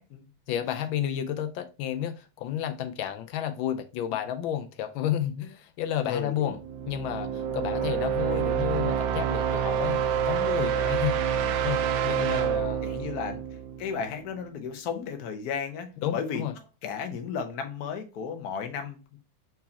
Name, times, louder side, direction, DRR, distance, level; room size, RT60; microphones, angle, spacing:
voice 1, 0.5-6.6 6.9-11.2 11.6-12.8 16.0-16.5, left 10 dB, 85° left, 1.4 m, -31 dB
voice 2, 6.0-6.6 7.7-8.0 12.1-12.3 12.8-19.2, left 6 dB, 60° left, 1.2 m, -35 dB
sound 1, 6.6-14.4, right 8 dB, 80° right, 1.3 m, -28 dB
4.6 x 4.2 x 2.8 m
omnidirectional pair, 2.1 m